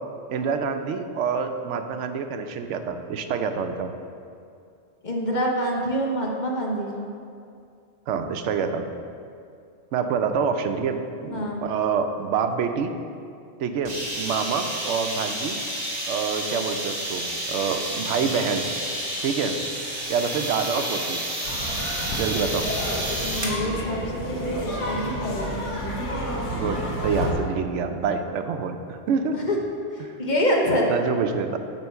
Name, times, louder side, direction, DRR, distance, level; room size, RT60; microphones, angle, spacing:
voice 1, 0.3-3.9 8.1-8.9 9.9-12.9 13.6-15.6 16.1-18.7 19.2-19.6 20.1-21.2 22.2-22.7 26.5-29.4 30.0-30.1 30.9-31.6, right 6 dB, 80° right, 7 dB, 0.9 m, -27 dB
voice 2, 5.0-7.1 11.3-11.6 23.2-25.9 29.3-29.6 29.9-31.0, equal, 45° left, -1 dB, 0.9 m, -26 dB
sound 1, 13.8-23.6, right 1 dB, 40° right, 1.4 m, -30 dB
sound 2, 21.4-27.3, equal, 85° left, 1.6 m, -30 dB
8.9 x 3.1 x 6.5 m, 2.4 s
omnidirectional pair, 1.2 m